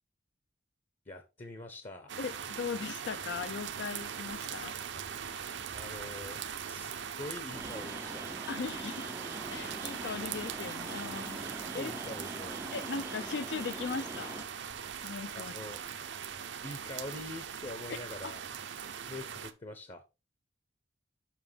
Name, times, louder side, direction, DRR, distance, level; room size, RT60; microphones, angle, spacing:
voice 1, 1.1-2.1 5.7-6.4 6.7-8.3 11.2-11.5 11.7-12.7 15.3-15.8 16.6-18.5 19.1-20.0, left 2 dB, 35° left, 0.8 m, -44 dB
sound 1, 2.1-19.5, right 7 dB, 65° right, 0.7 m, -41 dB
voice 2, 2.2-4.7 5.3-5.6 8.5-9.1 9.5-11.4 11.7-11.9 12.7-14.5 15.0-15.5 17.9-18.0 18.2-18.3, left 5 dB, 60° left, 0.4 m, -38 dB
sound 2, 7.5-14.5, right 2 dB, 15° right, 0.4 m, -44 dB
7.3 x 5.8 x 3.4 m
head